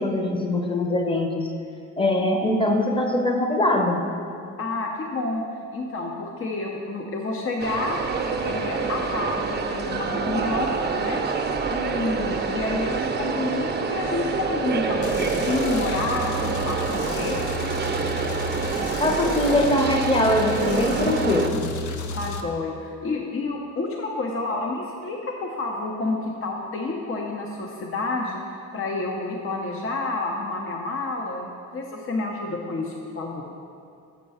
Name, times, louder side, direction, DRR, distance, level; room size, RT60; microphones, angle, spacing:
voice 1, 0.0-1.5 2.0-4.1 19.0-21.7, left 1 dB, 15° left, 3 dB, 0.9 m, -22 dB
voice 2, 4.6-5.4 5.7-11.2 11.7-17.7 22.2-33.4, left 3 dB, 45° left, 1 dB, 0.8 m, -29 dB
sound 1, 7.6-21.5, right 5 dB, 35° right, 0.6 m, -27 dB
sound 2, 15.0-22.4, left 3 dB, 75° left, 0.7 m, -33 dB
7.5 x 5.5 x 5.5 m, 2.5 s
cardioid pair, 90°, 30 cm